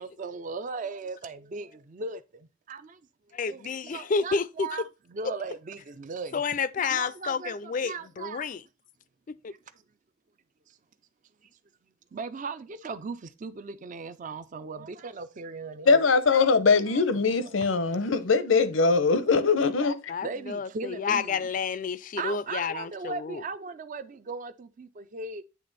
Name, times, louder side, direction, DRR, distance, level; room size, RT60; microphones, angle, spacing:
voice 1, 0.0-2.2 2.7-3.0 3.5-4.8 5.1-6.4 6.8-8.5 12.1-16.0 16.8-17.6 20.2-21.4 22.2-25.4, right 4 dB, 40° right, 0.4 m, -38 dB
voice 2, 3.3-4.8 6.3-8.6 9.3-9.5 20.1-23.4, left 5 dB, 40° left, 0.4 m, -30 dB
voice 3, 15.9-20.1, left 4 dB, 85° left, 0.7 m, -22 dB
8.5 x 3.4 x 4.0 m
head